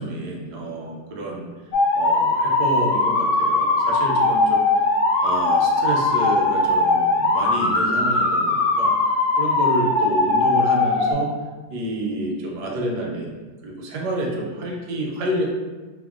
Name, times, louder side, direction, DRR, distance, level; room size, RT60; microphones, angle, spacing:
voice 1, 0.0-1.5 1.9-4.8 5.2-11.3 11.7-13.4 13.6-15.4, right 1 dB, 80° right, -1 dB, 1.1 m, -29 dB
Theremin alone, 1.7-11.1, left 2 dB, 75° left, 1.1 m, -20 dB
3.6 x 2.1 x 2.3 m, 1.3 s
omnidirectional pair, 1.8 m